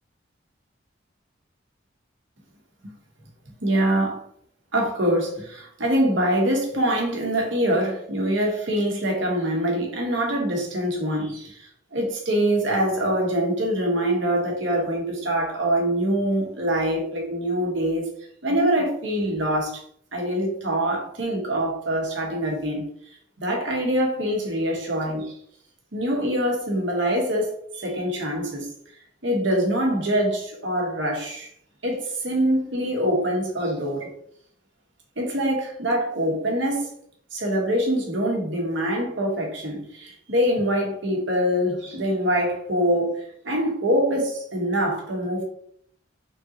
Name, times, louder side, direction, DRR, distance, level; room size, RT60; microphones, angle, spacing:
voice 1, 3.6-4.2 4.7-18.1 18.4-19.8 20.1-22.9 23.4-25.4 25.9-28.7 29.2-31.5 31.8-34.1 35.2-36.9 37.3-43.1 43.4-45.4, equal, 75° right, 1.2 m, -24 dB
3.6 x 2.9 x 3.7 m
head